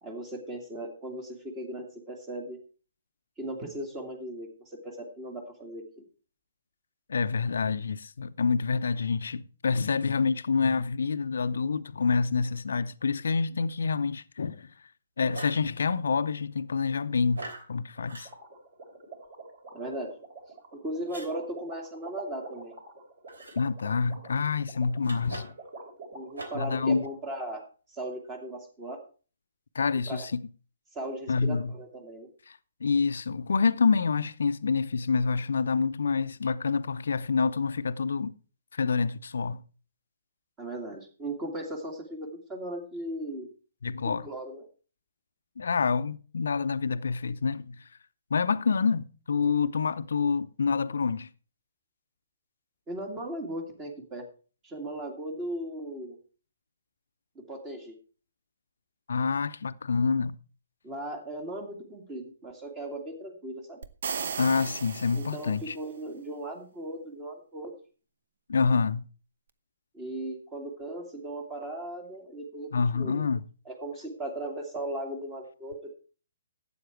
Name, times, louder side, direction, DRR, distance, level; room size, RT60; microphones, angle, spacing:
voice 1, 0.0-2.6 3.4-5.8 19.7-20.1 20.7-22.7 26.1-29.0 30.1-30.3 30.9-32.3 40.6-43.5 44.2-44.6 52.9-54.2 54.6-56.2 57.5-57.9 60.8-63.8 65.1-67.7 69.9-72.7 72.9-73.3 73.7-75.9, right 1 dB, 20° right, 2.2 m, -37 dB
voice 2, 7.1-14.7 15.2-18.3 23.6-25.5 26.5-27.1 29.7-30.4 31.3-31.7 32.5-38.3 38.7-39.6 43.8-44.3 45.6-47.8 48.3-51.3 59.1-60.4 64.4-65.8 68.5-69.1 72.7-73.4, left 5 dB, 65° left, 0.5 m, -27 dB
sound 1, 15.3-15.7 17.3-17.7 18.1-18.3 21.1-21.3 23.3-23.6 25.0-25.7 26.3-26.7, right 2 dB, 75° right, 3.1 m, -41 dB
sound 2, 18.0-27.1, right 3 dB, 40° right, 4.7 m, -45 dB
sound 3, 63.8-65.9, right 6 dB, 55° right, 0.9 m, -36 dB
12.5 x 8.6 x 4.6 m
figure-of-eight pair, 130°, 0 cm